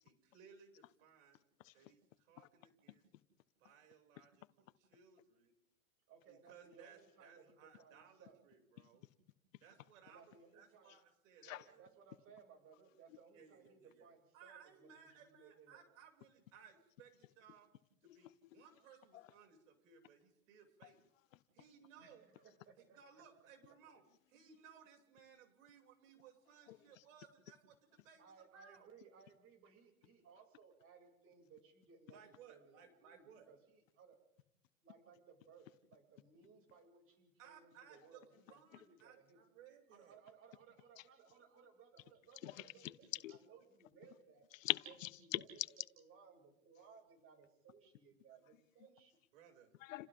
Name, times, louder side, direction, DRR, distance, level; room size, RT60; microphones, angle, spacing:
voice 1, 0.0-1.4 1.7-3.0 3.6-5.5 6.3-9.0 9.6-10.2 10.5-11.9 13.3-14.1 14.3-17.7 18.0-21.0 21.5-22.3 22.8-28.9 32.1-33.5 37.4-40.2 49.3-49.7, right 7 dB, 60° right, 7.8 m, -62 dB
voice 2, 6.1-8.4 10.0-11.0 11.4-15.8 22.0-23.2 28.2-32.2 32.5-34.2 34.8-39.4 39.9-43.1 43.5-44.4 45.2-45.4 46.0-49.2, right 6 dB, 30° right, 7.7 m, -63 dB
voice 3, 42.4-42.9 43.2-43.3 44.5-45.7 49.8-50.1, left 15 dB, 60° left, 1.6 m, -42 dB
29.5 x 29.0 x 4.0 m
hypercardioid pair, 130°, 43 cm